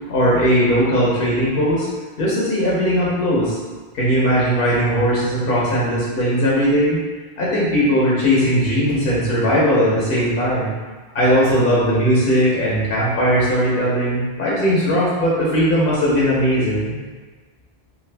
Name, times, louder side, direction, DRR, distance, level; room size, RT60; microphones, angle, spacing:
voice 1, 0.1-1.9 2.2-3.6 3.9-7.0 7.4-10.7 11.1-17.0, equal, 65° left, -6 dB, 0.9 m, -18 dB
2.6 x 2.4 x 3.2 m, 1.4 s
omnidirectional pair, 1.0 m